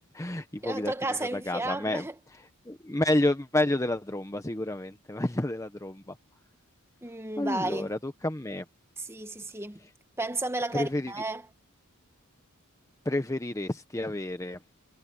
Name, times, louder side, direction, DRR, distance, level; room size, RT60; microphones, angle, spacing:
voice 1, 0.0-2.1 2.7-6.1 7.4-8.6 10.7-11.1 13.0-14.6, left 1 dB, 15° left, 0.8 m, -30 dB
voice 2, 0.6-2.1 7.0-7.9 9.0-9.8 10.2-11.4, right 2 dB, 10° right, 1.4 m, -33 dB
head